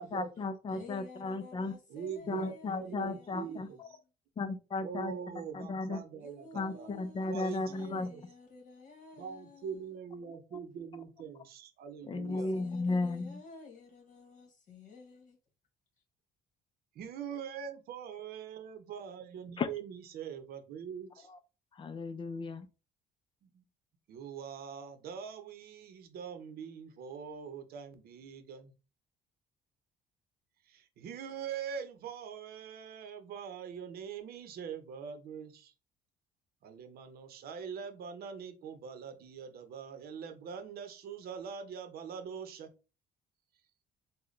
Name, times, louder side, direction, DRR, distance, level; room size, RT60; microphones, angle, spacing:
voice 1, 0.0-1.7 2.3-3.7 4.4-5.1 5.5-6.0 6.5-8.1 12.1-13.4 19.6-19.7 21.8-22.7, left 3 dB, 30° left, 0.5 m, -35 dB
voice 2, 0.7-3.8 6.1-9.9 12.1-15.4, left 3 dB, 45° left, 1.6 m, -52 dB
voice 3, 1.9-4.0 4.8-6.9 7.3-8.2 9.2-12.5 16.9-21.3 23.4-23.6 24.1-28.7 30.6-35.7 36.6-42.7, right 7 dB, 65° right, 0.8 m, -43 dB
3.9 x 2.2 x 3.2 m
cardioid pair, 110°, 17 cm